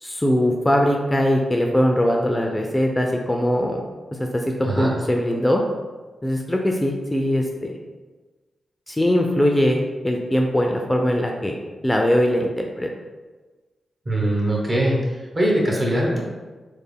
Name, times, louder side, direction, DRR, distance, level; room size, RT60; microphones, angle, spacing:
voice 1, 0.0-3.8 4.2-5.6 6.2-7.7 8.9-11.5 11.8-12.5 12.8-12.9, equal, 15° left, 1 dB, 0.4 m, -21 dB
voice 2, 4.6-4.9 14.0-15.0 15.3-16.2, right 1 dB, 40° right, -2 dB, 1.1 m, -21 dB
3.2 x 2.1 x 3.5 m, 1.3 s
supercardioid pair, 45°, 0 cm